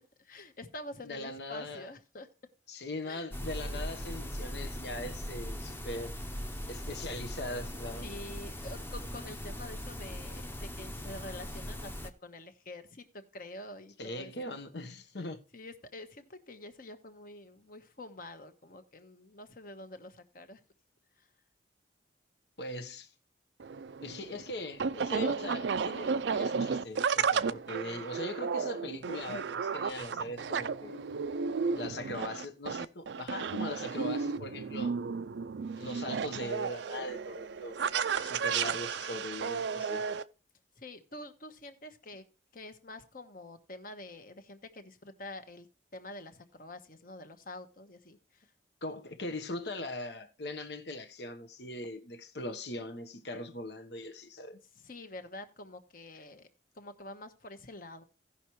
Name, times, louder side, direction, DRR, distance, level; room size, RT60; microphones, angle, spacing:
voice 1, 0.0-2.3 3.0-3.3 3.7-3.8 8.0-14.6 15.5-20.6 21.2-21.3 40.8-42.2 42.5-45.7 45.9-48.5 54.8-56.5 56.7-58.0, left 2 dB, 50° left, 1.2 m, -47 dB
voice 2, 1.0-1.9 2.7-6.2 6.7-8.2 14.0-15.4 22.6-23.1 24.0-31.1 31.8-35.0 35.8-37.8 38.1-40.0 48.8-54.6, left 1 dB, 70° left, 1.1 m, -40 dB
sound 1, 3.3-12.1, equal, 15° left, 0.8 m, -40 dB
sound 2, 23.6-40.2, right 5 dB, 85° right, 0.4 m, -33 dB
17.0 x 5.8 x 3.1 m
head